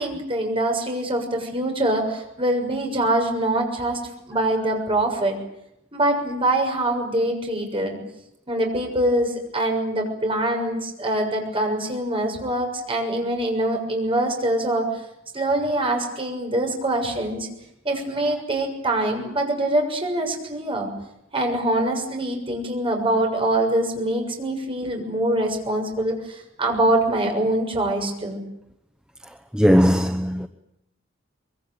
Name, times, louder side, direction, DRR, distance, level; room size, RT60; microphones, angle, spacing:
voice 1, 0.0-4.0 4.3-5.4 5.9-8.0 8.5-14.9 15.3-17.5 17.9-20.9 21.3-28.4, right 1 dB, 30° right, 6.8 m, -24 dB
voice 2, 29.5-30.5, equal, 5° right, 0.9 m, -18 dB
24.0 x 23.5 x 9.2 m
head